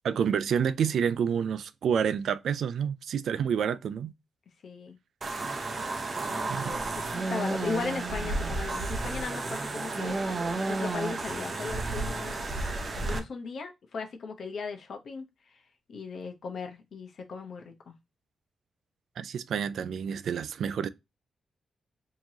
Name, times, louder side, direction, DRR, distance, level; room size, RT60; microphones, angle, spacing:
voice 1, 0.0-4.1 6.5-6.8 19.2-20.9, right 7 dB, 70° right, 0.3 m, -28 dB
voice 2, 4.6-5.0 6.3-10.2 10.7-12.5 12.9-15.6 15.9-17.9, left 4 dB, 55° left, 0.9 m, -37 dB
sound 1, 5.2-13.2, right 2 dB, 30° right, 0.7 m, -32 dB
4.5 x 3.0 x 2.7 m
wide cardioid pair, 145°, 0 cm